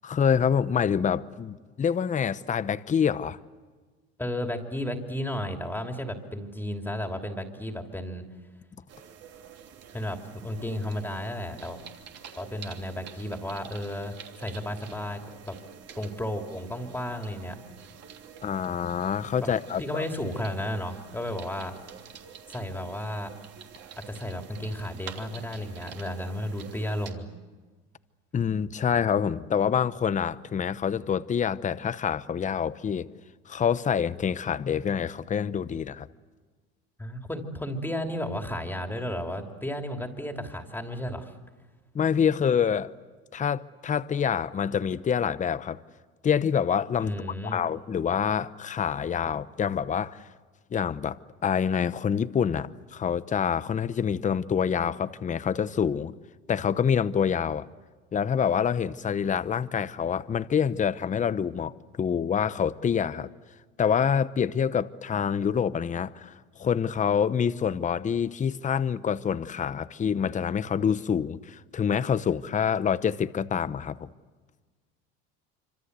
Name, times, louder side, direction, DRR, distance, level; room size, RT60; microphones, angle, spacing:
voice 1, 0.0-3.4 18.4-20.0 28.3-33.1 33.5-36.1 41.9-42.9 43.3-45.8 46.2-47.1 47.4-50.2 50.7-51.2 51.4-56.1 56.5-57.6 58.1-61.7 62.0-63.3 63.8-74.1, left 7 dB, 25° left, 0.8 m, -26 dB
voice 2, 4.2-8.3 9.9-11.8 12.4-15.6 15.9-17.6 19.4-19.5 19.8-21.7 22.5-23.3 24.1-27.3 37.0-41.3 47.0-47.6, left 1 dB, 5° left, 3.0 m, -33 dB
sound 1, 8.9-27.1, right 8 dB, 50° right, 3.2 m, -48 dB
26.0 x 25.5 x 8.2 m
supercardioid pair, 110°, 31 cm